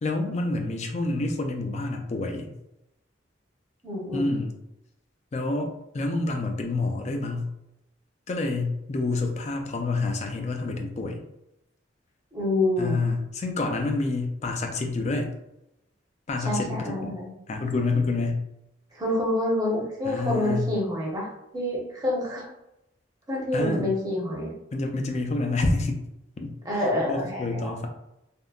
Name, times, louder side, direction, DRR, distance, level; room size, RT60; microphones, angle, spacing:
voice 1, 0.0-2.5 4.1-4.6 5.3-7.5 8.3-11.2 12.8-15.3 16.3-17.1 17.5-18.4 20.0-20.7 23.5-23.9 24.7-26.0 26.4-26.5 27.1-27.9, left 3 dB, 35° left, 4 dB, 0.4 m, -28 dB
voice 2, 3.8-4.2 12.3-13.0 16.4-17.3 18.9-22.5 23.3-24.5 26.6-27.7, left 1 dB, 20° right, -3 dB, 0.8 m, -27 dB
3.5 x 2.1 x 2.3 m, 0.86 s
head